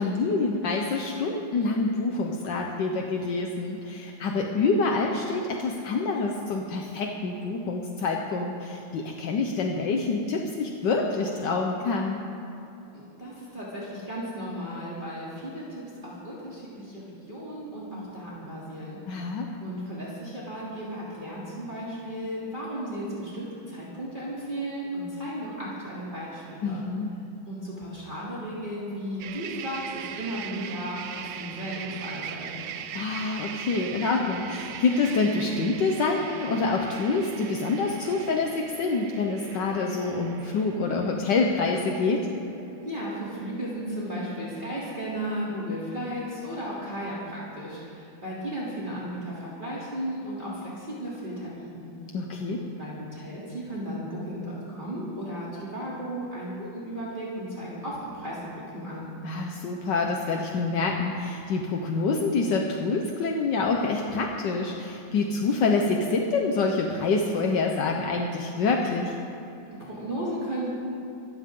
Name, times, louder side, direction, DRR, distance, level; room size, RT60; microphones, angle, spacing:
voice 1, 0.0-12.2 19.1-19.5 26.6-27.2 32.9-42.3 52.1-52.6 59.2-69.2, left 3 dB, 75° left, 1 dB, 1.7 m, -26 dB
voice 2, 12.9-17.0 17.3-19.2 19.6-26.8 27.5-32.5 42.8-51.9 52.8-58.4 58.7-59.0 69.8-70.7, equal, 25° right, -8 dB, 3.3 m, -35 dB
sound 1, 29.2-47.6, right 9 dB, 75° right, 1.4 m, -41 dB
24.5 x 15.5 x 3.8 m, 2.9 s
omnidirectional pair, 2.0 m